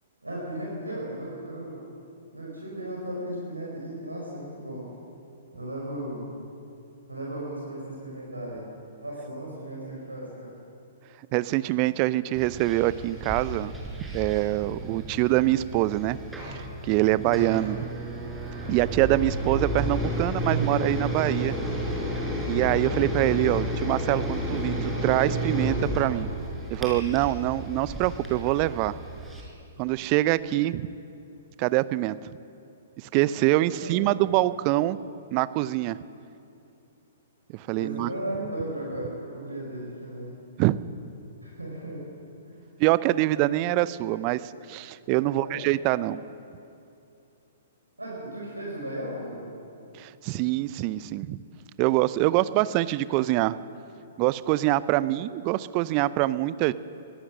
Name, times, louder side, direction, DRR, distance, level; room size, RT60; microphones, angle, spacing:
voice 1, 0.2-1.8 2.3-4.9 5.5-6.3 7.1-8.6 9.0-10.5 17.0-17.4 33.7-34.2 37.8-40.3 41.4-42.1 42.4-42.6 45.3-45.6 48.0-49.5, right 1 dB, 85° right, -3 dB, 5.1 m, -36 dB
voice 2, 11.3-13.7 14.1-16.2 16.5-17.9 18.7-21.6 22.5-26.3 26.7-28.9 29.8-30.9 31.6-32.3 33.0-35.0 35.3-36.0 37.5-38.1 40.6-40.8 42.8-46.2 49.9-51.4 51.8-53.6 54.2-56.7, right 16 dB, 35° right, 17 dB, 0.6 m, -25 dB
sound 1, 12.4-29.4, equal, 5° right, 5.2 m, -31 dB
24.5 x 17.5 x 6.4 m, 2.7 s
figure-of-eight pair, 115°, 0 cm